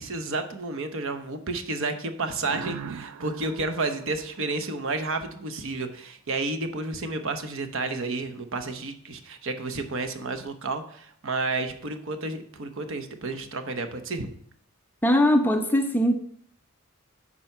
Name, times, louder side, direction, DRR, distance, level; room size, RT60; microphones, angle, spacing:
voice 1, 0.0-14.3, right 3 dB, 60° right, 8 dB, 0.9 m, -31 dB
sound 1, 2.5-5.1, right 6 dB, 75° right, 0.4 m, -41 dB
voice 2, 15.0-16.1, equal, 10° left, 5 dB, 0.6 m, -20 dB
9.1 x 4.3 x 5.6 m, 0.63 s
head